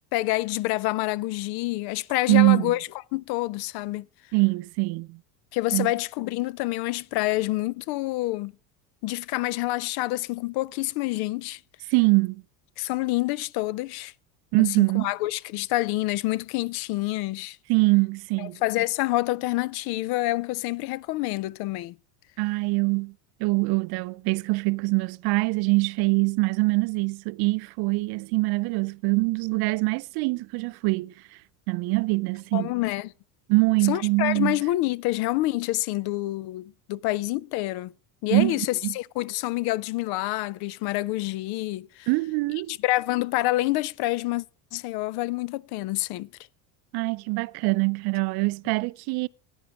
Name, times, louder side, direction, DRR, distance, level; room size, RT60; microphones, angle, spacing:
voice 1, 0.1-4.1 5.5-8.5 9.0-11.6 12.8-14.1 14.6-17.6 18.4-21.9 32.5-33.1 33.9-37.9 38.2-42.1 42.7-44.5 44.7-46.3, left 18 dB, 60° left, 0.5 m, -27 dB
voice 2, 2.3-2.7 4.3-5.2 5.7-5.9 11.9-12.4 14.5-15.1 17.7-18.6 22.4-23.1 23.4-31.2 31.7-32.7 33.5-34.6 38.3-38.9 42.1-42.8 46.9-49.3, right 25 dB, 55° right, 0.5 m, -23 dB
12.5 x 9.8 x 4.7 m
supercardioid pair, 110°, 45 cm